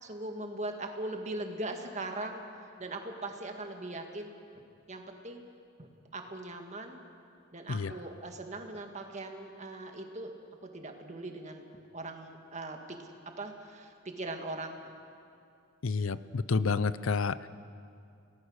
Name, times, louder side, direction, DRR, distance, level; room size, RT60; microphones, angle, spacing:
voice 1, 0.0-4.3 4.9-5.5 5.8-5.9 6.1-7.0 7.5-10.3 10.7-11.7 11.9-14.8, right 2 dB, 35° right, 4 dB, 1.9 m, -40 dB
voice 2, 15.8-17.5, left 4 dB, 75° left, 16 dB, 0.6 m, -29 dB
27.5 x 18.0 x 6.5 m, 2.5 s
head